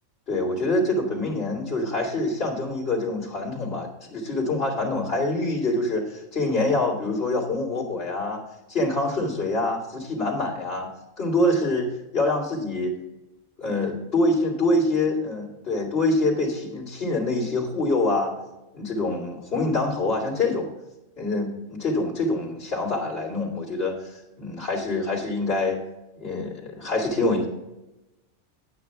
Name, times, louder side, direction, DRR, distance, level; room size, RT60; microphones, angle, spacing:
voice 1, 0.3-8.4 8.7-10.9 11.2-11.9 12.1-13.0 13.6-18.4 18.7-20.7 21.2-25.8 26.2-27.5, left 2 dB, 45° left, -4 dB, 3.0 m, -25 dB
9.5 x 9.3 x 3.6 m, 0.97 s
omnidirectional pair, 1.4 m